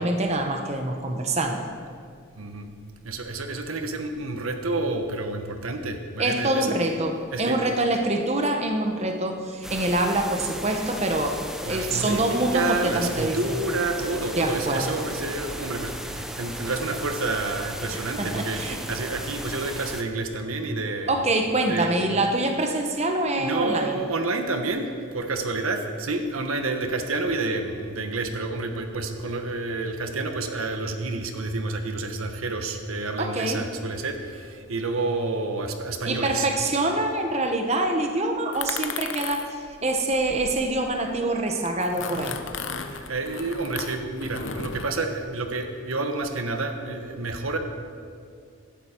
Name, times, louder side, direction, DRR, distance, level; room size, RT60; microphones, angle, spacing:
voice 1, 0.0-1.7 6.2-13.4 14.4-15.0 17.9-18.8 21.1-24.0 33.2-33.7 36.1-42.4, right 2 dB, 30° right, 4 dB, 1.0 m, -25 dB
voice 2, 2.4-2.7 3.0-6.8 7.3-7.8 11.6-21.1 21.7-22.0 23.4-36.5 42.7-47.6, right 3 dB, 85° right, 6 dB, 1.3 m, -29 dB
sound 1, 9.6-20.0, equal, ahead, 0.6 m, -36 dB
sound 2, 38.5-41.2 41.7-44.9, left 5 dB, 65° left, 0.8 m, -35 dB
16.5 x 11.5 x 4.5 m, 2.3 s
head